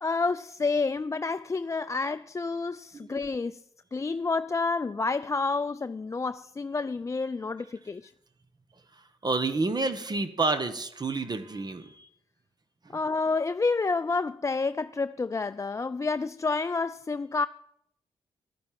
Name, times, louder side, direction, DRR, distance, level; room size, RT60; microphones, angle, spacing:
voice 1, 0.0-3.6 3.9-8.1 12.9-17.5, left 4 dB, 30° left, 0.4 m, -29 dB
voice 2, 9.2-12.1, right 3 dB, 40° right, 1.3 m, -29 dB
11.5 x 9.6 x 7.6 m
supercardioid pair, 50°, 10 cm